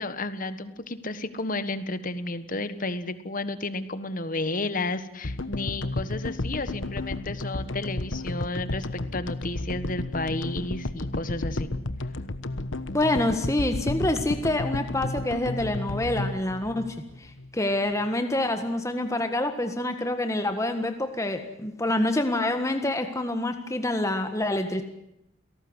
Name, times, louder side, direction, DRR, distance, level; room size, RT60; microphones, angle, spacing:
voice 1, 0.0-11.7, left 2 dB, 40° left, 12 dB, 1.5 m, -32 dB
sound 1, 5.2-17.6, left 2 dB, 65° left, 1.2 m, -32 dB
voice 2, 12.9-16.8 17.2-24.8, left 1 dB, 15° left, 6 dB, 1.6 m, -27 dB
29.0 x 18.0 x 8.1 m, 0.82 s
head